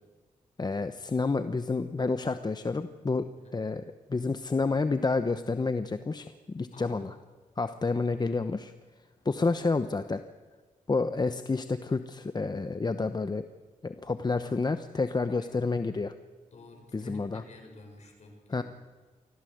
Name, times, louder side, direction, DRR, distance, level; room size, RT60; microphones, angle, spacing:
voice 1, 0.6-7.1 7.6-8.7 9.2-10.2 10.9-13.5 13.8-16.1 16.9-17.4 18.5-18.6, left 3 dB, 30° left, 10 dB, 0.9 m, -29 dB
voice 2, 6.7-7.2 15.3-15.6 16.5-18.6, left 3 dB, 55° left, 3 dB, 6.6 m, -50 dB
25.0 x 16.5 x 8.0 m, 1.4 s
cardioid pair, 85°, 14 cm